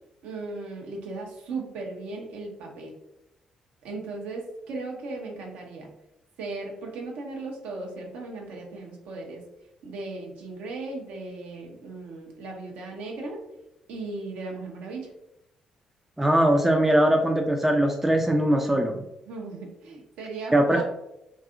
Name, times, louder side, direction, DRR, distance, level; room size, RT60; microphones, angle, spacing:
voice 1, 0.2-2.9 3.8-5.9 6.4-9.4 9.8-13.4 13.9-15.1 19.3-20.8, right 3 dB, 65° right, 0 dB, 0.6 m, -37 dB
voice 2, 16.2-19.1 20.5-20.8, right 1 dB, 10° right, 2 dB, 0.4 m, -21 dB
2.7 x 2.4 x 2.4 m, 0.87 s
figure-of-eight pair, 40°, 3 cm